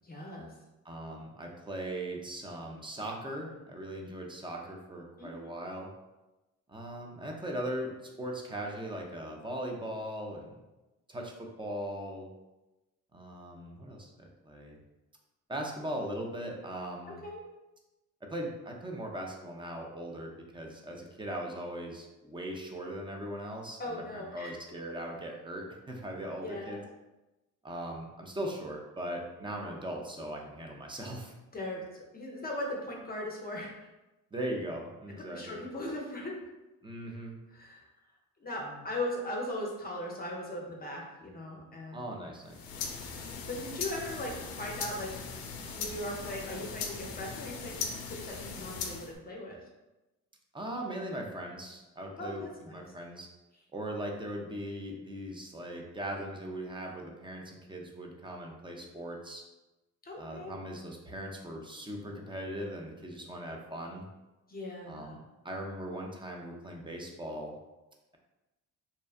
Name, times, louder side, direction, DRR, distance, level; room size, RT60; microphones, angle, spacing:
voice 1, 0.0-0.5 5.2-5.3 17.2-17.4 23.8-24.5 26.4-26.8 31.5-33.9 35.3-36.3 37.5-37.9 38.4-42.0 43.5-45.1 45.7-49.6 52.2-52.7 60.0-60.5 64.5-65.2, left 1 dB, 25° left, -1 dB, 0.6 m, -39 dB
voice 2, 0.8-5.9 6.7-10.4 11.1-12.3 13.1-14.8 15.5-17.2 18.2-26.8 27.6-31.3 34.3-35.6 36.8-37.4 38.6-38.8 41.9-42.6 50.5-52.5 52.7-53.3 53.7-59.4 60.2-64.1 64.9-65.2 65.4-67.5, right 1 dB, 15° right, 0 dB, 0.5 m, -39 dB
sound 1, 42.4-49.2, left 5 dB, 80° left, 0.5 m, -39 dB
2.7 x 2.1 x 2.4 m, 1.0 s
supercardioid pair, 65°, 35 cm